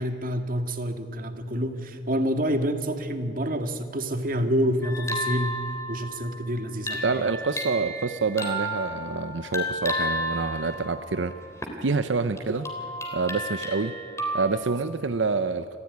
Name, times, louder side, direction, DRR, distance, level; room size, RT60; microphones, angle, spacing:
voice 1, 0.0-5.6 5.9-7.3, equal, 50° right, 6 dB, 1.9 m, -28 dB
sound 1, 4.8-11.9 12.4-14.5, equal, 15° left, 3.2 m, -32 dB
voice 2, 7.0-11.3 11.8-12.7 13.1-14.0 14.3-15.8, right 4 dB, 90° right, 10 dB, 0.7 m, -27 dB
27.5 x 15.5 x 9.5 m, 2.6 s
head